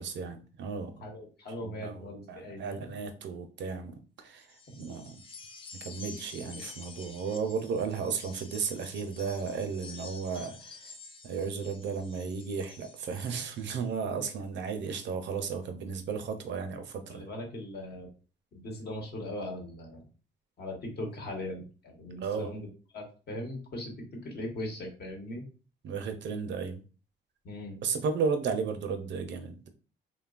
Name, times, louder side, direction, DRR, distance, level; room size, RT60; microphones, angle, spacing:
voice 1, 0.0-0.9 1.6-5.2 5.7-10.9 11.2-17.3 22.2-22.5 25.8-26.8 27.8-29.7, right 5 dB, 65° right, 7 dB, 0.5 m, -34 dB
voice 2, 1.0-2.8 14.1-14.2 17.1-18.1 18.5-20.0 20.6-22.7 22.9-25.4 27.4-27.8, left 1 dB, 55° left, 1 dB, 1.1 m, -39 dB
sound 1, 4.4-13.8, left 4 dB, 25° left, 0.4 m, -49 dB
3.1 x 2.2 x 2.4 m, 0.36 s
cardioid pair, 90°, 20 cm